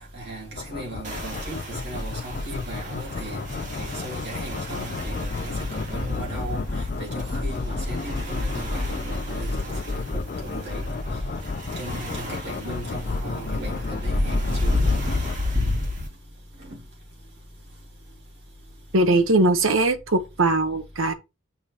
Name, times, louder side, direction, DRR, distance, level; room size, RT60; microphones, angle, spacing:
voice 1, 0.1-3.4 3.8-9.5 9.9-10.8 11.8-14.9, right 1 dB, 55° right, 3.2 m, -37 dB
sound 1, 0.6-15.4, left 4 dB, 40° left, 0.4 m, -34 dB
sound 2, 1.0-16.1, left 2 dB, 35° right, 2.8 m, -30 dB
voice 2, 18.9-21.1, right 2 dB, 75° right, 1.1 m, -20 dB
6.9 x 4.2 x 5.0 m
head